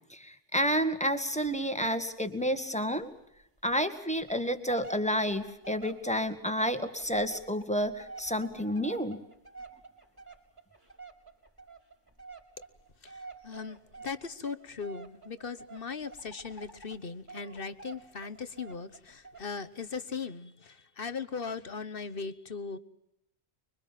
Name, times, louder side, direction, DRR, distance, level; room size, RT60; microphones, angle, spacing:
voice 1, 0.1-3.1 3.6-9.2, equal, 5° left, 8 dB, 1.9 m, -30 dB
sound 1, 0.6-1.1 1.4-1.6 1.9-2.0 2.4-2.5 3.0-3.1 3.7-3.8 4.2-17.0 17.3-19.5 19.9-20.0, right 4 dB, 20° right, 4.5 m, -49 dB
voice 2, 13.0-22.8, left 5 dB, 50° left, 13 dB, 1.3 m, -39 dB
25.5 x 23.0 x 7.5 m, 0.80 s
omnidirectional pair, 1.2 m